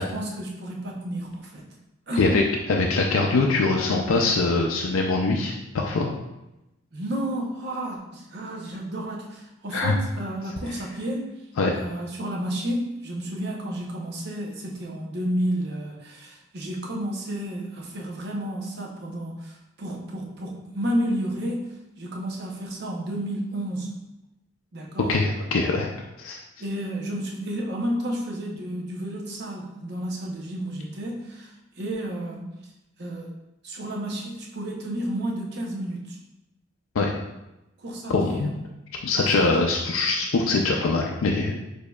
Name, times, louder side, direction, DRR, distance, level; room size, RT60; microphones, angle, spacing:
voice 1, 0.0-1.6 2.1-2.3 6.9-11.3 11.8-23.9 24.7-25.2 26.6-32.5 33.0-33.3 33.6-36.2 37.8-38.5 39.1-39.5, right 1 dB, 50° right, -1 dB, 0.7 m, -31 dB
voice 2, 2.7-6.1 9.7-9.9 11.6-11.7 25.1-25.9 26.2-26.4 37.0-37.1 38.1-38.5 39.0-41.6, left 3 dB, 80° left, 0 dB, 0.4 m, -23 dB
6.4 x 2.7 x 2.3 m, 0.94 s
head